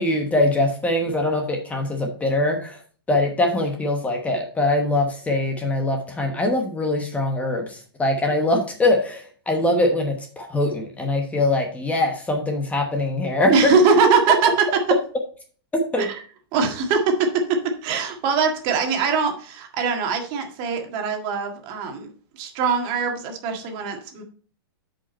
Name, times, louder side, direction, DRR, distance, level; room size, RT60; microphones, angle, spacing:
voice 1, 0.0-2.8 3.1-13.5 15.7-16.1, left 2 dB, 10° left, 3 dB, 1.1 m, -22 dB
voice 2, 13.5-14.5 16.0-16.2 16.5-22.1 22.3-24.2, right 5 dB, 40° right, 3 dB, 1.8 m, -22 dB
8.4 x 5.2 x 4.3 m, 0.44 s
hypercardioid pair, 140°, 13 cm